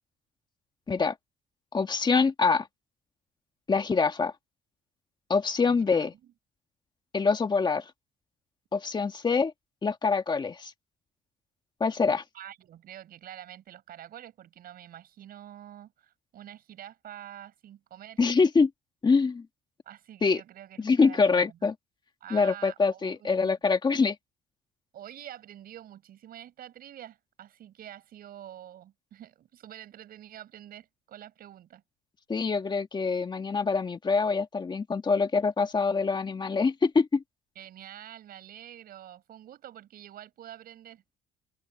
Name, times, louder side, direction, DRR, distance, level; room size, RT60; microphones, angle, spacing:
voice 1, 1.7-2.7 3.7-4.3 5.3-6.1 7.1-7.9 8.7-9.5 9.8-10.7 11.8-12.2 18.2-18.7 19.0-19.5 20.2-20.4 20.8-21.7 22.3-24.2 32.3-37.2, left 4 dB, 25° left, 1.9 m, -25 dB
voice 2, 5.6-6.3 12.3-18.2 19.8-21.7 22.2-23.8 24.9-31.8 37.5-41.0, right 11 dB, 60° right, 6.4 m, -47 dB
open air
cardioid pair, 110°, 17 cm